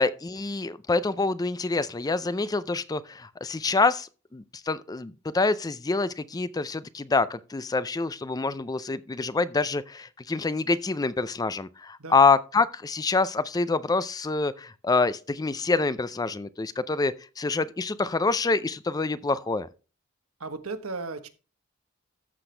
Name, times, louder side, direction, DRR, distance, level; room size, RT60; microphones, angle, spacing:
voice 1, 0.0-19.7, left 3 dB, 15° left, 0.4 m, -26 dB
voice 2, 20.4-21.3, right 3 dB, 75° right, 1.2 m, -35 dB
13.5 x 6.0 x 3.3 m
head